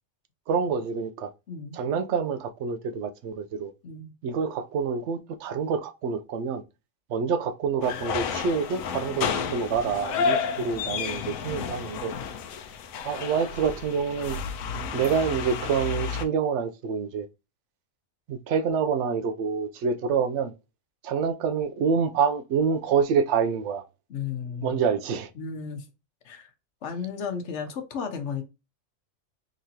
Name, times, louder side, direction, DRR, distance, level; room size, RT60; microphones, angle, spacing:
voice 1, 0.5-1.3 1.7-3.7 4.2-6.6 7.1-12.1 13.0-14.4 14.9-17.3 18.3-20.5 21.0-23.8 24.6-25.3, right 6 dB, 65° right, 0.8 m, -27 dB
voice 2, 1.5-1.8 3.8-4.1 10.5-11.0 24.1-24.8 25.4-25.9 26.2-26.5 26.8-28.4, left 6 dB, 60° left, 1.0 m, -34 dB
sound 1, 7.8-16.2, left 6 dB, 80° left, 1.0 m, -31 dB
4.0 x 3.1 x 2.7 m
omnidirectional pair, 1.4 m